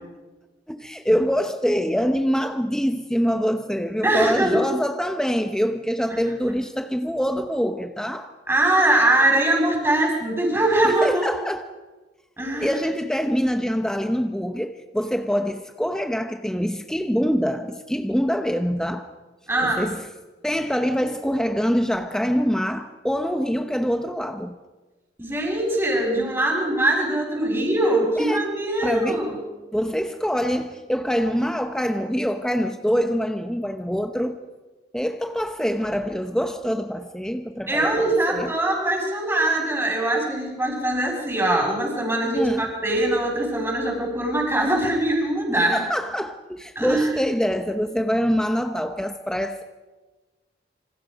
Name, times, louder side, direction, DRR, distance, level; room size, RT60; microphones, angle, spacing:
voice 1, 0.7-8.3 10.8-11.6 12.6-19.1 19.6-20.1 20.4-24.5 28.2-28.4 28.8-29.2 29.7-34.4 34.9-38.5 42.3-42.7 45.7-49.6, equal, 5° left, 0.8 m, -25 dB
voice 2, 4.0-4.6 6.1-6.2 8.5-11.3 12.4-12.7 19.5-19.9 25.2-29.4 37.7-45.8 46.7-47.0, right 1 dB, 15° right, 6.4 m, -22 dB
27.5 x 26.0 x 5.2 m
head